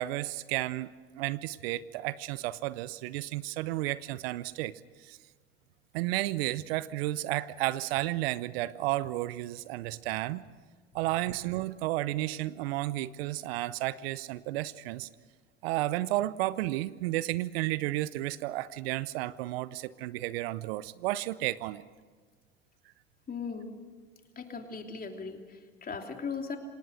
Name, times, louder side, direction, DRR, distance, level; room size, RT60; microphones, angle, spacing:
voice 1, 0.0-4.7 5.1-5.2 5.9-10.4 10.9-15.1 15.6-21.8, right 16 dB, 70° right, 18 dB, 0.7 m, -32 dB
voice 2, 23.3-23.7 24.3-26.6, left 5 dB, 30° left, 4 dB, 3.1 m, -38 dB
26.5 x 18.5 x 6.5 m, 1.5 s
hypercardioid pair, 75°, 31 cm